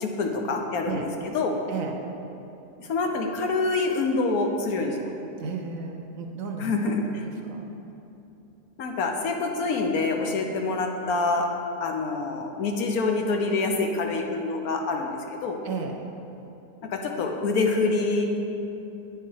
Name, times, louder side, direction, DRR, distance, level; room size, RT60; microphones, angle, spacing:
voice 1, 0.0-1.6 2.8-5.1 6.6-7.2 8.8-11.5 11.8-15.6 16.9-18.4, left 3 dB, 70° left, 2 dB, 1.2 m, -26 dB
voice 2, 5.4-6.8 7.1-7.7 15.6-16.0, right 5 dB, 65° right, 4 dB, 0.9 m, -33 dB
8.7 x 7.0 x 4.7 m, 2.9 s
omnidirectional pair, 1.7 m